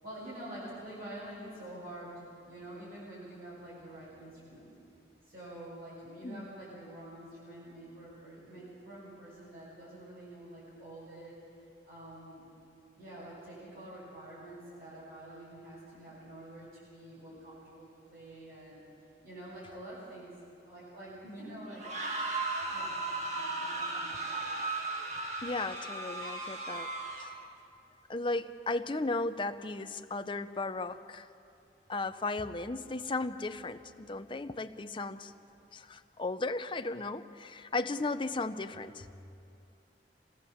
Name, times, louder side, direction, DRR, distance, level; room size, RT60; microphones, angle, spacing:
voice 1, 0.0-4.7 5.2-11.3 11.9-12.4 13.0-18.8 19.2-20.3 20.6-21.8 22.7-24.5, right 1 dB, 60° right, -7 dB, 6.8 m, -47 dB
sound 1, 21.7-27.5, right 2 dB, 40° right, 2.0 m, -36 dB
voice 2, 25.4-26.9 27.2-27.3 28.1-31.3 31.9-35.3 35.7-39.1, left 3 dB, 30° left, 9 dB, 0.7 m, -35 dB
26.5 x 17.5 x 7.3 m, 2.6 s
head